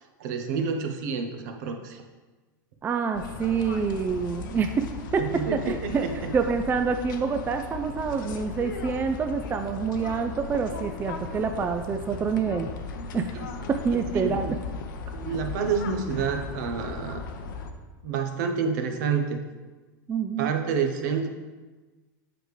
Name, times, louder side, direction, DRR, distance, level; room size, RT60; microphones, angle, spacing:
voice 1, 0.2-2.0 5.2-6.3 13.3-13.5 13.9-14.6 15.2-17.2 18.0-19.4 20.4-21.3, right 6 dB, 65° right, 5 dB, 0.9 m, -28 dB
voice 2, 2.8-5.2 5.5-12.7 13.1-14.6 20.1-20.5, right 6 dB, 20° right, 6 dB, 0.3 m, -27 dB
sound 1, 3.1-17.7, left 4 dB, 75° left, 0.7 m, -37 dB
7.7 x 5.0 x 3.2 m, 1.2 s
hypercardioid pair, 115°, 11 cm